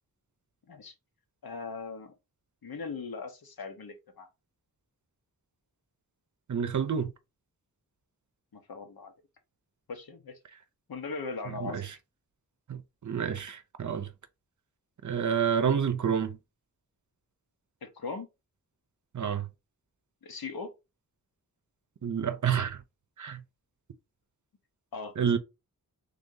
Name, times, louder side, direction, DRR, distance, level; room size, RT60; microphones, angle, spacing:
voice 1, 1.4-2.1 2.6-4.3 8.5-9.1 9.9-10.4 10.9-11.8 17.8-18.3 20.2-20.7 24.9-25.4, left 4 dB, 75° left, 1.0 m, -39 dB
voice 2, 6.5-7.1 11.6-11.8 12.7-14.1 15.0-16.4 19.1-19.5 22.0-22.8 23.2-23.4 25.2-25.4, right 7 dB, 55° right, 0.6 m, -28 dB
3.4 x 2.7 x 3.7 m
wide cardioid pair, 60°, 36 cm